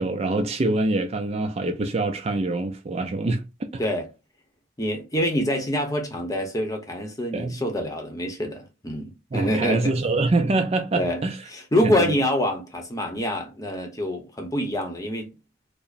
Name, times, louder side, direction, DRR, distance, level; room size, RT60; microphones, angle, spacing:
voice 1, 0.0-3.7 7.3-7.6 9.3-11.4 11.8-12.2, right 2 dB, 35° right, 0.4 m, -25 dB
voice 2, 4.8-9.9 10.9-11.2 11.5-15.3, equal, 20° left, 0.8 m, -26 dB
4.9 x 2.0 x 2.5 m
head